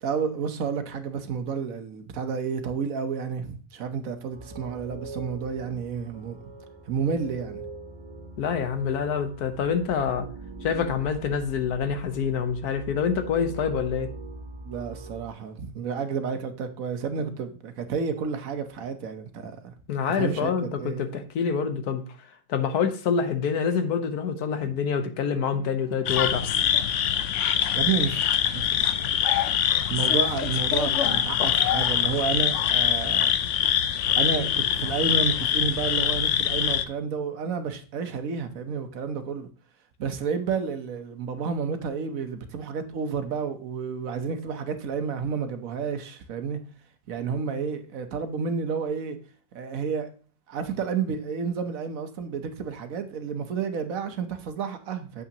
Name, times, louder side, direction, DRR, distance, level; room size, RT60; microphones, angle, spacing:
voice 1, 0.0-6.5 6.9-7.7 14.6-19.7 20.1-20.5 20.8-21.1 24.6-24.7 27.7-28.9 29.9-33.4 34.1-39.5 40.0-46.6 47.1-49.2 49.5-50.1 50.5-55.2, right 6 dB, 65° right, 1.3 m, -30 dB
sound 1, 4.3-15.3, right 3 dB, 25° right, 0.6 m, -42 dB
voice 2, 8.4-10.3 10.6-14.1 19.9-22.0 22.5-26.5, left 6 dB, 80° left, 1.5 m, -26 dB
Bowed string instrument, 25.5-30.8, equal, 5° right, 3.0 m, -50 dB
sound 2, 26.1-36.8, left 9 dB, 65° left, 0.8 m, -24 dB
8.4 x 7.1 x 2.9 m
omnidirectional pair, 1.6 m